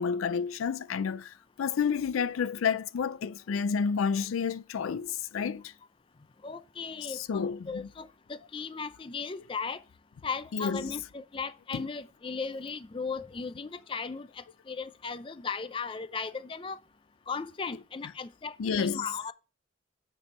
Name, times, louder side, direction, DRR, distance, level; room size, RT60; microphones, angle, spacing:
voice 1, 0.0-5.7 7.1-7.9 10.5-10.9 11.7-11.9 18.6-19.0, left 6 dB, 90° left, 0.4 m, -30 dB
voice 2, 6.4-9.8 10.2-16.8 17.3-19.3, left 5 dB, 25° left, 0.4 m, -37 dB
7.8 x 5.4 x 4.2 m
head